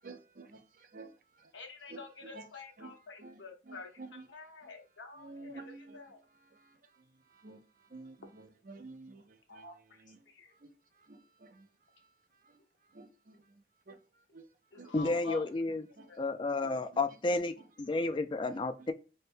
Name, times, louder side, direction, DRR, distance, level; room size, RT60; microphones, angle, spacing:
voice 1, 0.0-1.5 1.9-2.5 2.8-4.3 4.6-4.7 5.1-10.2 10.5-12.6 12.9-14.5 14.7-15.4 15.7-16.2 16.6-17.0 17.6-17.7 18.5-18.9, right 3 dB, 45° right, 0.6 m, -53 dB
voice 2, 1.5-5.6 5.9-6.2 9.5-9.7 10.3-10.5 14.7-15.5 16.1-16.2, left 4 dB, 85° left, 0.9 m, -48 dB
voice 3, 14.9-15.8 16.2-18.9, left 2 dB, 25° left, 0.3 m, -31 dB
3.3 x 2.2 x 4.3 m
head